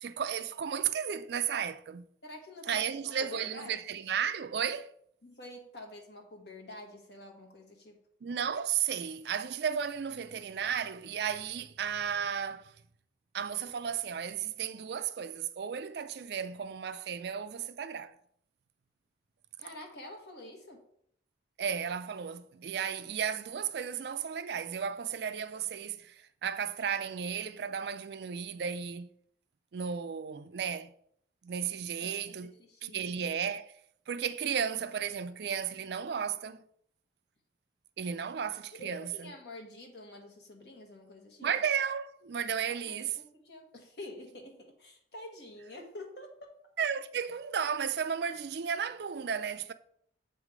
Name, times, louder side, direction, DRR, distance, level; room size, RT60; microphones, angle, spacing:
voice 1, 0.0-2.1 2.7-4.9 8.2-12.7 13.3-18.1 21.6-29.1 29.7-30.9 31.4-33.7 34.1-36.6 38.0-39.3 41.4-43.2 46.8-49.7, right 7 dB, 65° right, 0.4 m, -34 dB
voice 2, 2.2-3.7 5.2-8.0 19.6-20.8 23.9-24.0 32.0-33.1 38.7-41.5 42.7-46.5, left 1 dB, 65° left, 1.4 m, -48 dB
7.2 x 3.3 x 4.8 m
head